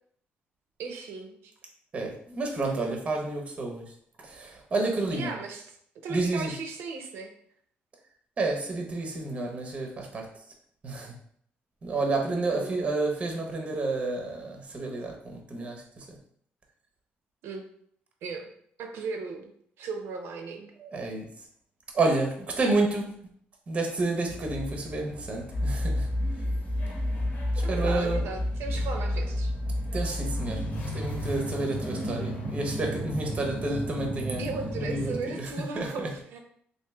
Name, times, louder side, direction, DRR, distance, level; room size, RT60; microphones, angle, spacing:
voice 1, 0.8-1.5 5.1-7.3 12.5-12.7 17.4-17.6 18.2-18.5 18.8-19.5 19.8-20.7 27.6-29.5 33.7-33.8 34.4-36.4, right 4 dB, 75° right, 4 dB, 0.6 m, -36 dB
voice 2, 1.9-3.8 4.2-5.3 6.1-6.5 8.4-10.3 10.8-11.1 11.8-16.0 20.8-21.2 21.9-23.1 23.7-26.1 27.7-28.2 29.9-30.6 30.9-34.4 34.8-35.5 35.8-36.1, right 2 dB, 30° right, 2 dB, 0.6 m, -30 dB
sound 1, 24.3-35.2, left 1 dB, 45° left, 0.9 m, -31 dB
3.1 x 2.6 x 3.4 m, 0.64 s
cardioid pair, 130°, 4 cm